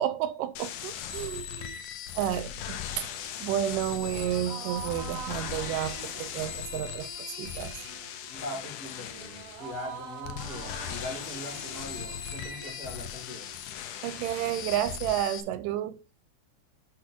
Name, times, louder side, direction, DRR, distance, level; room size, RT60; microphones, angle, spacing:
voice 1, 0.0-1.8 2.2-3.1 3.4-7.1 7.4-7.7 14.0-16.0, right 12 dB, 85° right, 2.2 m, -31 dB
sound 1, 0.6-15.4, left 9 dB, 80° left, 2.3 m, -39 dB
sound 2, 3.9-13.6, right 7 dB, 60° right, 1.6 m, -44 dB
voice 2, 8.3-13.5, left 1 dB, 30° left, 3.0 m, -41 dB
6.2 x 4.4 x 5.9 m
omnidirectional pair, 3.7 m